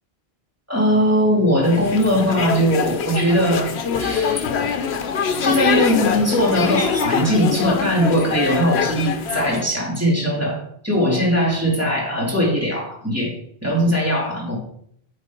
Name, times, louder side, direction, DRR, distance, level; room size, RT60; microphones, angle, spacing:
voice 1, 0.7-4.5 5.4-10.6 10.8-13.3 13.6-14.6, equal, 15° right, -4 dB, 2.0 m, -20 dB
sound 1, 1.6-9.7, left 6 dB, 85° left, 0.9 m, -24 dB
7.9 x 3.7 x 4.5 m, 0.70 s
omnidirectional pair, 1.1 m